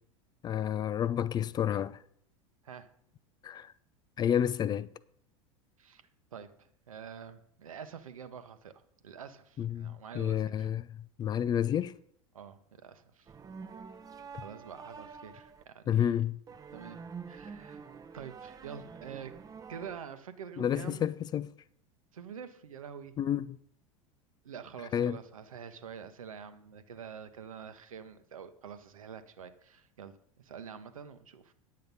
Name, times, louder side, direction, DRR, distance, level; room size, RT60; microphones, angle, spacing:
voice 1, 0.4-2.0 3.4-3.7 4.2-4.9 9.6-10.9 11.2-11.9 15.9-16.4 20.6-21.5 23.2-23.6 24.9-25.2, left 9 dB, 25° left, 0.3 m, -30 dB
voice 2, 6.3-8.7 9.0-10.7 12.3-13.3 14.4-16.2 16.7-17.0 17.3-17.8 18.1-19.4 19.7-21.1 22.1-23.1 24.4-31.5, right 7 dB, 75° right, 0.9 m, -46 dB
sound 1, 13.3-15.6 16.5-20.0, right 5 dB, 20° right, 0.7 m, -47 dB
9.5 x 7.7 x 5.4 m
figure-of-eight pair, 80°, 18 cm